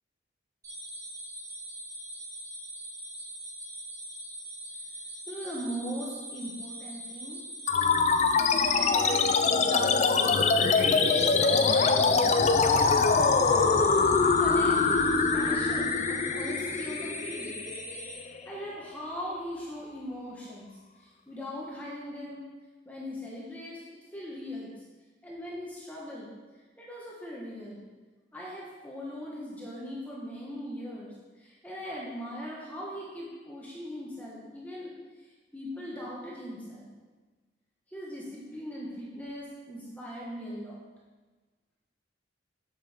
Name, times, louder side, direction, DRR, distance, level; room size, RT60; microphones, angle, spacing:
sound 1, 0.6-18.1, right 1 dB, 15° right, 1.1 m, -42 dB
voice 1, 5.3-7.4 8.3-12.6 14.2-17.5 18.4-20.7 21.0-22.5 22.9-24.7 25.2-26.3 26.8-27.9 28.3-34.9 35.5-36.9 37.9-40.8, equal, 10° left, -5 dB, 1.1 m, -40 dB
sound 2, 7.7-18.6, left 4 dB, 35° left, 0.3 m, -24 dB
7.3 x 6.1 x 3.5 m, 1.3 s
head